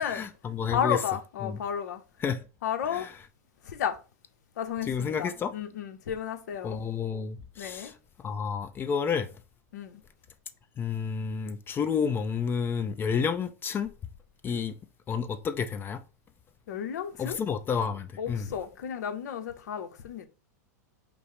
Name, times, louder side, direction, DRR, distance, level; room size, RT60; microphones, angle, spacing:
voice 1, 0.1-1.0 1.4-1.6 2.2-2.4 2.9-3.1 4.8-5.5 6.6-7.9 8.2-9.3 10.8-13.9 14.4-14.7 15.1-16.0 17.2-18.4, left 6 dB, 25° left, 0.4 m, -30 dB
voice 2, 0.7-2.0 2.6-3.1 3.6-4.0 4.6-6.8 7.6-7.9 9.7-10.0 16.7-17.4 18.2-20.3, left 8 dB, 80° left, 0.8 m, -32 dB
5.1 x 2.0 x 4.7 m
hypercardioid pair, 120°, 9 cm